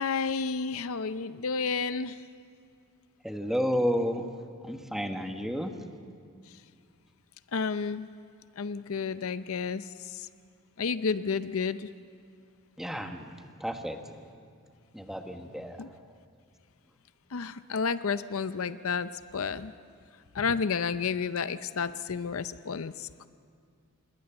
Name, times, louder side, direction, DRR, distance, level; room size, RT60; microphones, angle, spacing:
voice 1, 0.0-2.2 4.6-4.7 7.5-8.1 8.6-10.3 10.8-11.9 15.8-15.9 17.3-19.7 20.3-23.3, left 5 dB, 70° left, 13 dB, 0.6 m, -31 dB
voice 2, 3.2-4.3 4.6-5.7 12.8-13.3 13.6-14.2 14.9-15.8, equal, ahead, 5 dB, 1.3 m, -31 dB
27.0 x 21.0 x 7.0 m, 2.2 s
head